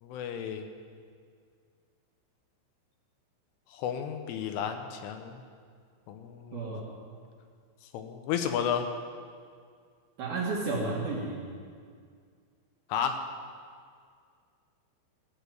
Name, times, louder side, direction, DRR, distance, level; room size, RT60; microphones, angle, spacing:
voice 1, 0.0-0.6 3.7-5.4 6.1-6.7 7.9-8.9 12.9-13.2, left 8 dB, 80° left, 6 dB, 3.1 m, -32 dB
voice 2, 6.5-6.8 10.2-11.4, right 3 dB, 60° right, -4 dB, 2.8 m, -32 dB
15.0 x 6.9 x 9.1 m, 2.1 s
omnidirectional pair, 5.9 m